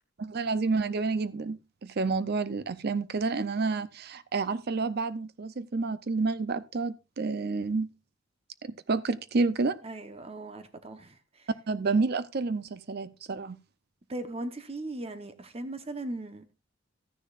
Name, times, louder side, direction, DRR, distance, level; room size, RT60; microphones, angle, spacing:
voice 1, 0.2-7.9 8.9-9.8 11.7-13.6, right 4 dB, 50° right, 0.6 m, -29 dB
voice 2, 9.8-11.5 14.1-16.4, right 2 dB, 30° right, 0.9 m, -38 dB
13.5 x 10.0 x 2.5 m
head